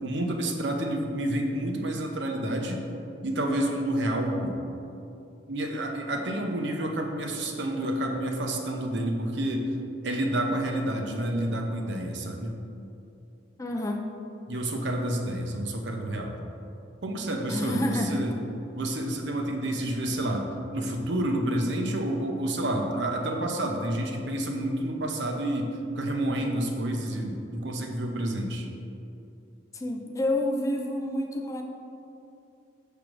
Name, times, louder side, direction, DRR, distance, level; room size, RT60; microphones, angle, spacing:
voice 1, 0.0-2.8 3.2-4.6 5.5-9.7 10.0-12.5 14.5-16.3 17.0-18.3 18.7-20.5 20.7-25.7 26.0-28.7, right 1 dB, 70° right, 2 dB, 0.7 m, -29 dB
voice 2, 13.6-14.0 17.5-18.2 29.7-31.6, left 1 dB, 15° left, 2 dB, 0.4 m, -28 dB
6.2 x 3.4 x 6.0 m, 2.7 s
head